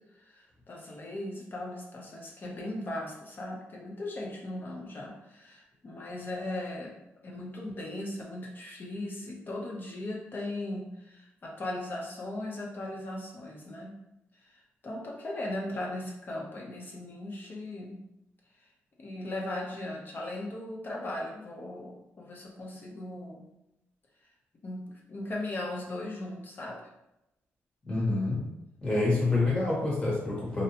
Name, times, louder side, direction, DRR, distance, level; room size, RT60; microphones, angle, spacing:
voice 1, 0.1-13.9 14.3-18.0 19.0-23.5 24.6-26.8, left 1 dB, 45° left, -1 dB, 0.7 m, -38 dB
voice 2, 27.9-28.5 28.8-30.6, left 2 dB, 25° left, -5 dB, 1.3 m, -27 dB
2.6 x 2.1 x 2.8 m, 0.88 s
cardioid pair, 80°, 5 cm